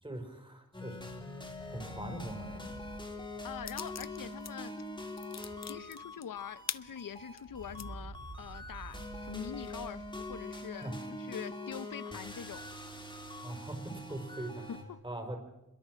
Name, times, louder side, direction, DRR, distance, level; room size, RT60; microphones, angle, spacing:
voice 1, 0.0-1.2 1.7-2.8 10.8-11.0 13.4-14.7 15.0-15.4, right 1 dB, 15° right, 4.9 m, -41 dB
sound 1, 0.7-14.8, left 2 dB, 15° left, 3.8 m, -44 dB
sound 2, 1.0-6.1 6.4-6.5 6.7-11.1, right 3 dB, 40° right, 2.2 m, -51 dB
voice 2, 3.4-4.8 5.6-12.6 14.6-15.0, left 8 dB, 85° left, 0.9 m, -44 dB
sound 3, 3.7-4.5 4.9-7.9 8.4-8.5 8.9-9.8, left 8 dB, 55° left, 0.7 m, -43 dB
28.0 x 22.0 x 6.4 m
wide cardioid pair, 120°, 32 cm